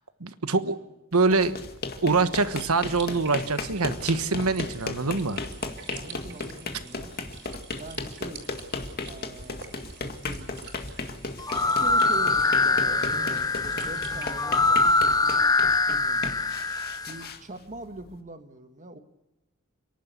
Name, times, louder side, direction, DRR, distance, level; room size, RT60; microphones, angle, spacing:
voice 1, 0.2-0.8 1.1-1.5 2.0-5.4, right 3 dB, 80° right, 11 dB, 1.3 m, -24 dB
sound 1, 1.2-18.2, left 3 dB, 45° left, 2.0 m, -36 dB
sound 2, 2.4-14.3, right 6 dB, 55° right, 4.3 m, -47 dB
voice 2, 5.9-7.1 7.7-8.5 9.1-9.7 10.0-10.7 11.5-16.3 17.1-19.0, right 2 dB, 35° right, 8 dB, 1.8 m, -43 dB
sound 3, 11.4-17.2, left 3 dB, 15° left, 0.7 m, -23 dB
30.0 x 11.5 x 8.4 m, 0.99 s
head